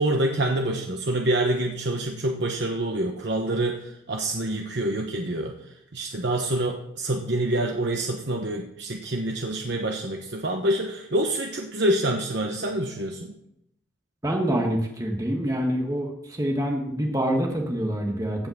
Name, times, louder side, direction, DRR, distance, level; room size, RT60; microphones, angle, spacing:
voice 1, 0.0-5.6 5.9-13.3, right 1 dB, 60° right, 3 dB, 1.1 m, -26 dB
voice 2, 14.2-18.5, equal, 15° right, 1 dB, 1.5 m, -26 dB
15.5 x 5.7 x 7.1 m, 0.79 s
head